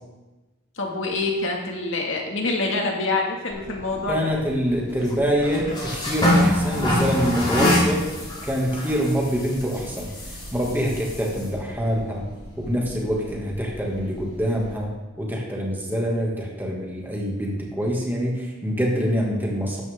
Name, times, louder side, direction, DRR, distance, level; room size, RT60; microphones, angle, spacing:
voice 1, 0.8-4.3, left 3 dB, 70° left, 1 dB, 2.1 m, -26 dB
sound 1, 3.5-14.7, left 1 dB, 25° left, 4.5 m, -27 dB
voice 2, 4.1-8.0 8.4-12.2 12.6-19.8, equal, 10° right, -2 dB, 2.2 m, -25 dB
13.0 x 10.5 x 3.7 m, 1.1 s
head